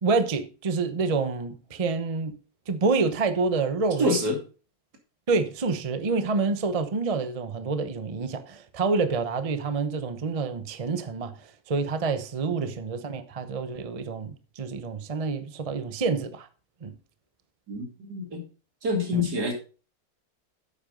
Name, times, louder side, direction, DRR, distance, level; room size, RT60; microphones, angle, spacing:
voice 1, 0.0-2.3 2.7-4.2 5.3-16.5 16.8-16.9 19.1-19.3, right 4 dB, 35° right, 0.5 m, -27 dB
voice 2, 4.0-4.4 12.6-12.7 17.7-18.4 18.8-19.5, left 1 dB, 60° right, 3.1 m, -26 dB
9.7 x 8.3 x 3.8 m
omnidirectional pair, 2.0 m